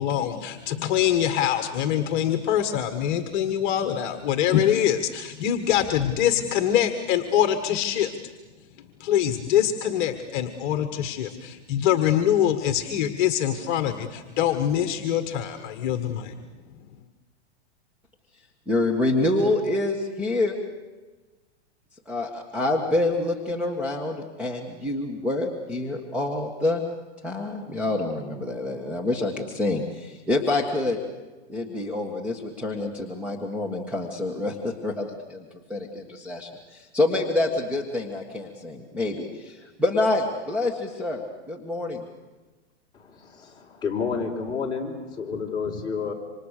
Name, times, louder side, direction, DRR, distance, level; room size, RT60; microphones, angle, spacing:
voice 1, 0.0-8.3 9.0-16.5, left 10 dB, 45° left, 8 dB, 1.6 m, -24 dB
voice 2, 18.7-20.6 22.1-26.8 27.2-31.0 31.5-35.4 35.7-42.0, left 2 dB, 5° right, 0 dB, 1.7 m, -27 dB
voice 3, 42.9-46.1, left 5 dB, 10° left, -4 dB, 4.4 m, -30 dB
28.0 x 26.0 x 6.7 m, 1.2 s
hypercardioid pair, 150°, 35 cm